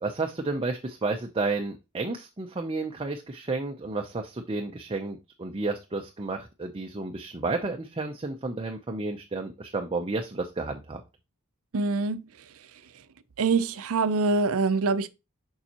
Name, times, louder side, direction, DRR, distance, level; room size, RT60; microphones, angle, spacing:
voice 1, 0.0-11.0, right 3 dB, 25° right, 0.6 m, -31 dB
voice 2, 11.7-12.2 13.4-15.1, right 4 dB, 65° right, 0.6 m, -24 dB
6.9 x 5.5 x 2.9 m
head